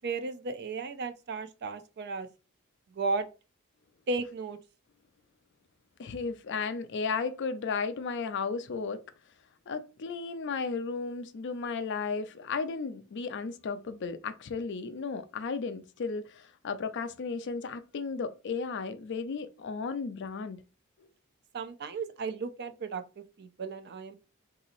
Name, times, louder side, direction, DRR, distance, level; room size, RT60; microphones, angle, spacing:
voice 1, 0.0-2.3 2.9-3.3 4.1-4.6 21.5-24.1, right 3 dB, 50° right, 0.4 m, -35 dB
voice 2, 6.0-9.0 9.7-20.6, left 5 dB, 60° left, 0.4 m, -34 dB
3.9 x 2.8 x 2.5 m
head